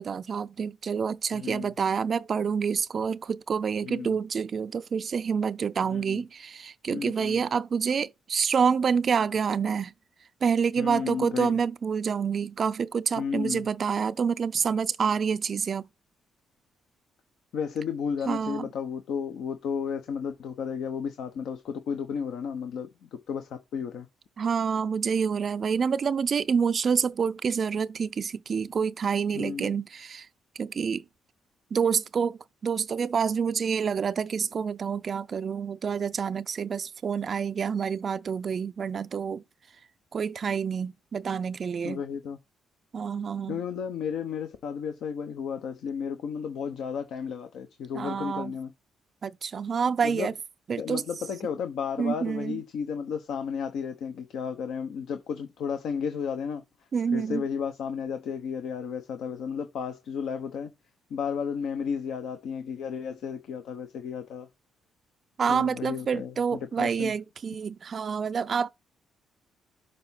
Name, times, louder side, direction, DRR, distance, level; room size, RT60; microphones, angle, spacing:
voice 1, 0.0-9.9 10.4-15.9 18.3-18.7 24.4-30.3 30.6-31.0 31.7-39.4 40.1-42.0 42.9-43.6 47.9-48.5 49.2-50.3 50.7-51.0 52.0-52.6 56.9-57.4 65.4-68.7, right 6 dB, 45° right, 0.3 m, -28 dB
voice 2, 1.3-1.7 3.8-4.2 5.9-6.2 6.9-7.4 10.8-11.5 13.2-13.6 17.5-24.1 29.3-29.8 41.8-42.4 43.5-48.7 50.0-50.3 50.8-56.6 57.1-60.7 61.1-64.5 65.5-66.3 66.8-67.1, left 6 dB, 75° left, 0.8 m, -33 dB
6.7 x 3.5 x 5.7 m
cardioid pair, 90°, 0 cm